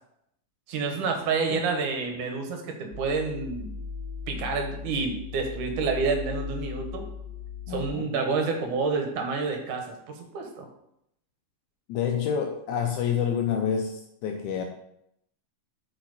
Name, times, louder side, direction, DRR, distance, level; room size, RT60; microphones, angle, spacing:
voice 1, 0.7-3.7 4.3-7.0 7.7-10.7, right 4 dB, 75° right, 3 dB, 2.7 m, -29 dB
sound 1, 2.9-7.9, left 6 dB, 55° right, 0.7 m, -38 dB
voice 2, 7.7-8.1 11.9-14.6, left 7 dB, 80° left, 4 dB, 1.9 m, -28 dB
8.5 x 5.6 x 4.1 m, 0.78 s
omnidirectional pair, 3.8 m